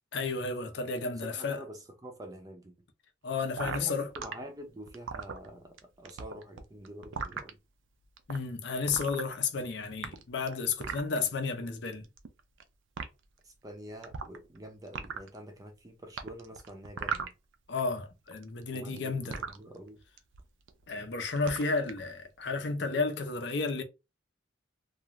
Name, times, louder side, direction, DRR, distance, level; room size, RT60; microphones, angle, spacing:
voice 1, 0.1-1.6 3.2-4.1 8.3-12.1 17.7-19.4 20.9-23.8, left 4 dB, 60° left, 0.6 m, -32 dB
voice 2, 1.0-2.7 3.6-7.6 13.4-17.3 18.7-20.0, right 1 dB, 20° right, 0.5 m, -47 dB
sound 1, 3.6-4.3 4.9-5.8 6.0-7.5 8.2-8.4 8.9-9.6 9.9-11.2 12.0-12.6 13.0-13.1 14.0-14.6 14.9-15.4 16.2-17.8 18.1-19.6 20.2-20.4 20.7-21.0 21.3-22.0, right 6 dB, 75° right, 0.4 m, -37 dB
2.4 x 2.4 x 3.0 m
head